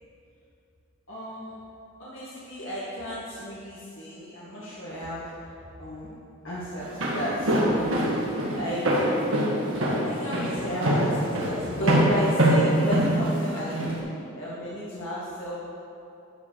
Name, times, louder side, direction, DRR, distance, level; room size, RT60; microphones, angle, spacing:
voice 1, 1.1-1.6 2.0-5.3 5.8-6.1 6.4-8.2 8.5-9.0 10.0-13.8 14.3-15.6, equal, 70° left, -8 dB, 1.8 m, -33 dB
Walk footsteps, 6.8-14.0, right 1 dB, 75° right, 1.7 m, -24 dB
11.0 x 4.9 x 6.4 m, 2.7 s
head